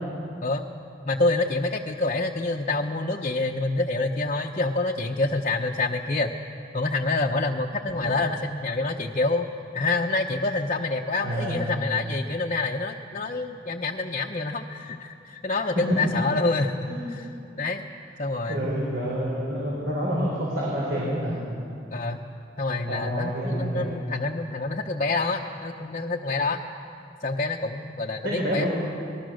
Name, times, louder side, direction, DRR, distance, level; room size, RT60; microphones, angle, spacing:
voice 1, 1.0-6.3 6.7-9.5 9.7-16.8 17.1-17.3 17.6-17.8 18.2-18.8 21.9-22.2 22.6-26.6 27.2-28.6, left 3 dB, 40° left, 0 dB, 0.9 m, -27 dB
voice 2, 11.2-11.7 16.9-17.0 18.5-21.4 22.9-24.0 28.2-28.7, equal, 65° right, -5 dB, 4.8 m, -28 dB
26.0 x 20.0 x 6.5 m, 2.5 s
head